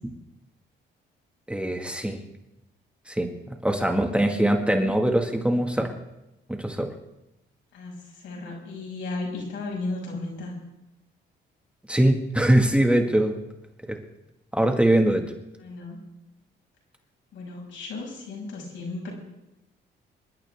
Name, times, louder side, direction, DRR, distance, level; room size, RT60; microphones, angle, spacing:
voice 1, 1.5-2.2 3.1-5.9 6.6-6.9 11.9-13.4 13.9-14.0 14.5-15.3, right 1 dB, 5° right, 3 dB, 1.8 m, -22 dB
voice 2, 3.9-4.9 7.7-10.6 15.6-16.0 17.3-19.1, left 3 dB, 70° left, -2 dB, 6.1 m, -35 dB
27.5 x 11.5 x 3.6 m, 0.93 s
cardioid pair, 90°, 20 cm